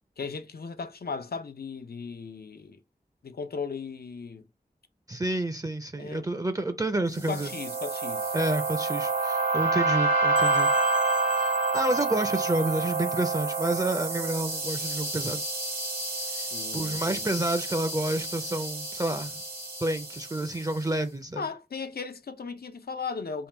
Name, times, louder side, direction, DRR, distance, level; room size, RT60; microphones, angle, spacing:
voice 1, 0.2-2.8 3.2-4.4 6.0-6.3 7.2-8.4 16.5-17.3 21.4-23.5, left 5 dB, 80° left, 0.5 m, -37 dB
voice 2, 5.1-7.5 8.3-10.7 11.3-15.4 16.3-16.5 16.7-19.4 19.8-21.4, right 2 dB, 20° right, 0.4 m, -29 dB
sound 1, 7.2-20.6, right 3 dB, 70° right, 1.1 m, -28 dB
sound 2, 10.4-12.9, left 1 dB, 35° left, 0.6 m, -42 dB
3.6 x 2.2 x 4.2 m
wide cardioid pair, 60°, 16 cm